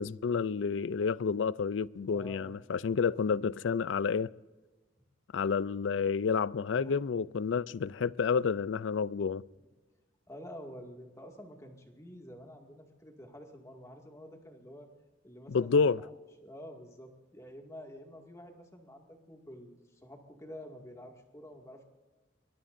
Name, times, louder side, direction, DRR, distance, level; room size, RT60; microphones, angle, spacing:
voice 1, 0.0-4.3 5.3-9.4 15.5-16.0, left 5 dB, 75° left, 0.4 m, -29 dB
voice 2, 2.1-2.5 6.7-7.0 10.3-14.9 15.2-16.1 16.4-21.8, equal, 15° left, 2.1 m, -49 dB
24.5 x 21.5 x 2.6 m
head